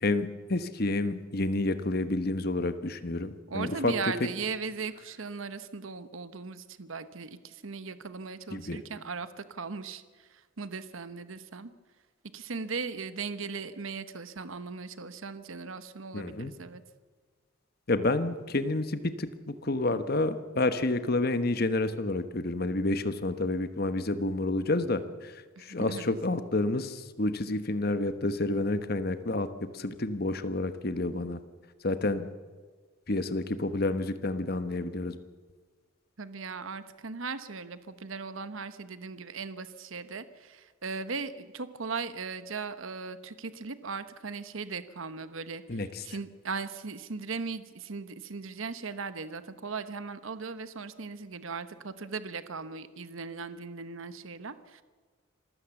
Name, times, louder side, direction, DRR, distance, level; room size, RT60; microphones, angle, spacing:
voice 1, 0.0-3.9 4.2-4.3 8.5-8.8 16.1-16.5 17.9-25.3 25.6-29.5 29.7-31.4 31.8-32.3 33.1-35.2 45.7-46.0, left 2 dB, 50° left, 11 dB, 1.2 m, -29 dB
voice 2, 3.5-11.7 12.3-16.8 25.6-26.2 36.2-54.8, right 4 dB, 75° right, 12 dB, 1.0 m, -38 dB
26.5 x 15.5 x 7.2 m, 1.5 s
head